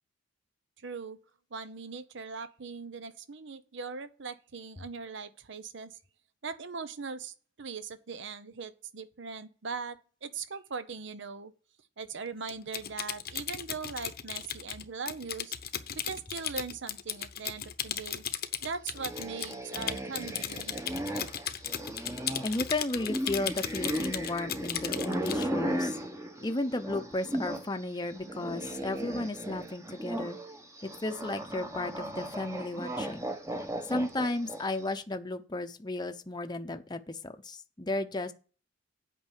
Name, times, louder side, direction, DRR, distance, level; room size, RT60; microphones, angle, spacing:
voice 1, 0.8-1.2 1.5-6.0 6.4-11.5 12.0-15.6 16.0-18.2 18.6-20.8, right 5 dB, 65° right, 0.8 m, -40 dB
Typing, 12.5-25.5, left 10 dB, 55° left, 0.9 m, -36 dB
sound 1, 19.0-27.7 28.0-34.8, right 1 dB, 15° right, 1.1 m, -36 dB
voice 2, 22.4-26.0 26.4-30.4 30.8-33.3 33.9-38.3, left 2 dB, 20° left, 0.8 m, -34 dB
8.7 x 5.4 x 7.3 m
head